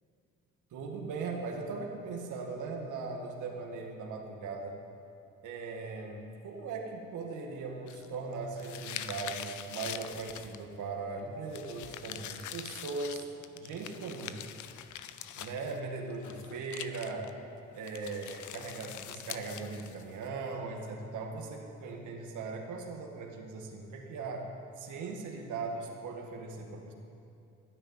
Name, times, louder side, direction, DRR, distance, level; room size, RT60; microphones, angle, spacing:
voice 1, 0.7-4.8 5.4-14.4 15.3-17.3 17.7-26.9, right 4 dB, 80° right, 1 dB, 2.0 m, -39 dB
sound 1, 7.9-10.8 11.5-15.8 16.1-17.3 17.8-20.3, left 11 dB, 75° left, 0.7 m, -44 dB
12.0 x 10.0 x 9.7 m, 2.6 s
cardioid pair, 90°, 30 cm